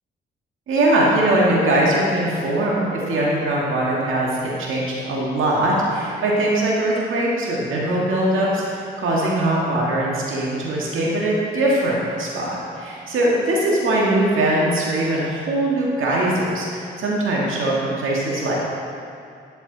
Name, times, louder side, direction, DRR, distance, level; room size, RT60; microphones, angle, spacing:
voice 1, 0.7-18.5, right 1 dB, 75° right, -4 dB, 2.0 m, -21 dB
10.5 x 8.6 x 4.1 m, 2.5 s
supercardioid pair, 60°, 21 cm